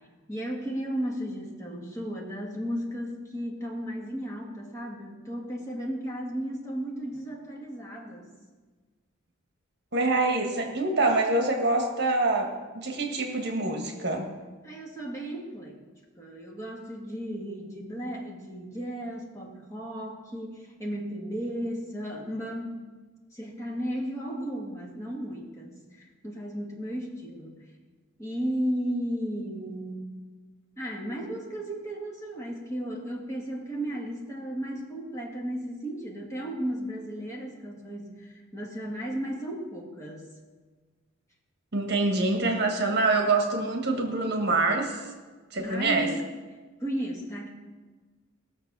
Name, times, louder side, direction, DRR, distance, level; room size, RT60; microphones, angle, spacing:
voice 1, 0.3-8.3 14.6-15.8 16.2-22.8 23.3-27.6 28.2-30.1 30.8-40.3 45.6-46.2 46.8-47.5, equal, 15° left, -2 dB, 1.9 m, -34 dB
voice 2, 9.9-12.5 12.7-14.3 41.7-45.0 45.5-46.1, right 2 dB, 50° right, 3 dB, 1.5 m, -25 dB
18.0 x 6.7 x 6.1 m, 1.4 s
head